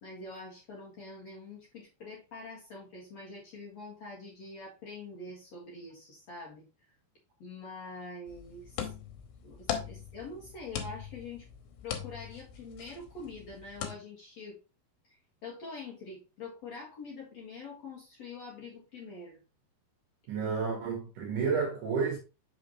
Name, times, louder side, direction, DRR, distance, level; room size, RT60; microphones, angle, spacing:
voice 1, 0.0-6.7 7.4-8.9 9.4-11.5 11.8-14.6 15.0-19.4, left 3 dB, 50° left, 2.2 m, -45 dB
sound 1, 8.3-13.9, left 9 dB, 85° left, 3.2 m, -40 dB
voice 2, 20.3-22.2, right 5 dB, 65° right, 2.2 m, -31 dB
6.3 x 5.8 x 3.0 m
omnidirectional pair, 5.0 m